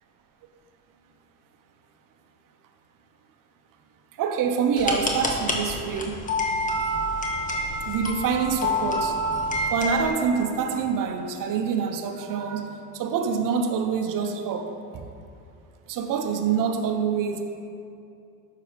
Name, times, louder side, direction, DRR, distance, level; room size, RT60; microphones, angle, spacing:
voice 1, 4.2-6.2 7.8-9.2 9.7-15.0 15.9-17.4, right 6 dB, 50° right, 7 dB, 1.0 m, -26 dB
sound 1, 4.8-10.1, left 1 dB, 20° left, 1.5 m, -27 dB
11.0 x 7.7 x 3.4 m, 2.5 s
hypercardioid pair, 75°, 43 cm